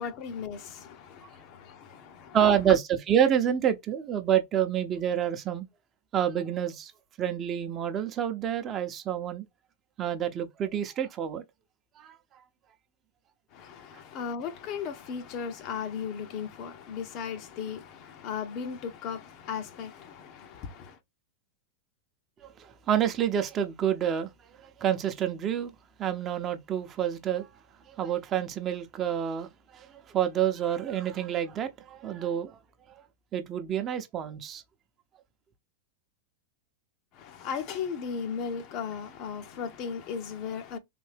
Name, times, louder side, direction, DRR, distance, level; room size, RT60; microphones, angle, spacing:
voice 1, 0.0-2.4 13.5-21.0 37.1-40.8, left 6 dB, 50° left, 0.7 m, -36 dB
voice 2, 2.3-5.7 6.1-6.9 7.2-9.4 10.0-11.4 12.0-12.1 22.4-24.3 24.6-25.7 26.0-27.5 27.9-32.6 32.9-33.0 33.3-34.6, right 9 dB, 35° right, 0.7 m, -28 dB
3.4 x 2.7 x 3.3 m
hypercardioid pair, 115°, 0 cm